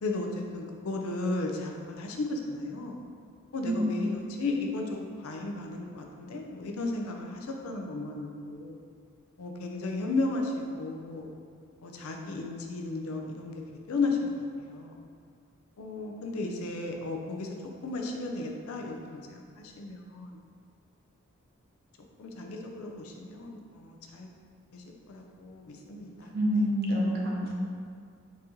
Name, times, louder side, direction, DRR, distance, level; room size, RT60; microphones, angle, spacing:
voice 1, 0.0-3.0 3.5-8.8 9.4-11.3 11.8-13.6 13.9-15.0 15.8-17.6 17.8-20.3 22.2-24.3 24.7-26.3, left 2 dB, 80° left, 2 dB, 0.5 m, -34 dB
voice 2, 3.6-4.2 26.2-27.5, equal, 50° right, -2 dB, 0.6 m, -28 dB
4.1 x 2.8 x 3.6 m, 2.2 s
head